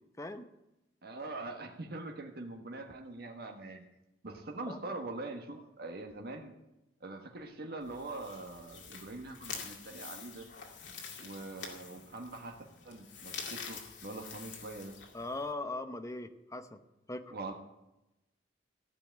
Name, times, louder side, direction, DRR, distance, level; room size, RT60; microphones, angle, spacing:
voice 1, 0.2-0.5 4.7-4.8 15.1-16.8 17.1-17.3, left 2 dB, 20° left, 9 dB, 0.8 m, -39 dB
voice 2, 1.0-3.8 4.2-6.5 7.0-10.5 11.2-12.6 12.8-14.9 17.3-17.5, right 2 dB, 60° right, 2 dB, 1.5 m, -43 dB
sound 1, 7.8-15.5, left 6 dB, 85° left, 2.3 m, -47 dB
15.0 x 5.8 x 9.1 m, 0.93 s
head